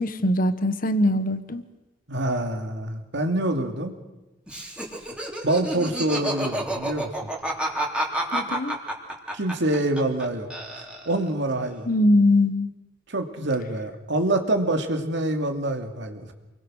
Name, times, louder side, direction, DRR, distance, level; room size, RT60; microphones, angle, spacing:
voice 1, 0.0-1.6 8.3-8.8 11.9-12.7, left 1 dB, 45° left, 11 dB, 1.4 m, -21 dB
voice 2, 2.1-3.9 5.4-7.3 9.3-11.9 13.1-16.3, right 1 dB, 65° right, 5 dB, 2.6 m, -26 dB
Laughter, 4.5-10.2 10.5-11.3, right 1 dB, 5° right, 3.6 m, -29 dB
28.0 x 22.0 x 6.5 m, 1.1 s
head